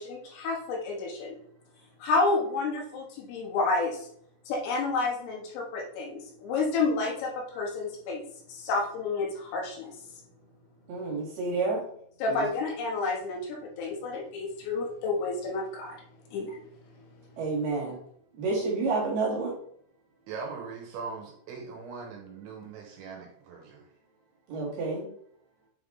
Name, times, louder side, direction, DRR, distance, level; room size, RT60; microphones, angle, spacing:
voice 1, 0.0-1.4 2.0-4.0 4.5-8.2 8.5-9.9 12.2-16.0 16.3-16.6, left 3 dB, 75° left, -1 dB, 3.9 m, -30 dB
voice 2, 10.9-11.8 12.3-12.5 17.4-18.0 18.3-19.6 24.5-25.1, right 3 dB, 60° right, -4 dB, 3.2 m, -29 dB
voice 3, 20.3-23.9, right 5 dB, 75° right, 1 dB, 3.0 m, -40 dB
8.7 x 3.5 x 3.7 m, 0.63 s
omnidirectional pair, 6.0 m